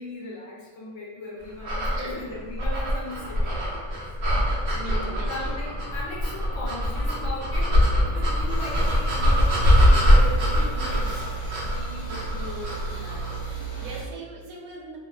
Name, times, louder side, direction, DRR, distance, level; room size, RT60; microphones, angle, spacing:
voice 1, 0.0-4.0 5.2-11.2 11.6-13.4, left 2 dB, 65° left, -4 dB, 0.9 m, -38 dB
sound 1, 1.6-13.5, equal, 65° right, 0.6 m, -23 dB
voice 2, 2.0-2.7 4.7-5.6 10.6-10.8 12.9-15.0, right 2 dB, 85° right, -2 dB, 1.1 m, -40 dB
sound 2, 8.5-14.0, right 6 dB, 25° left, 0.9 m, -35 dB
2.6 x 2.1 x 2.3 m, 1.3 s
omnidirectional pair, 1.5 m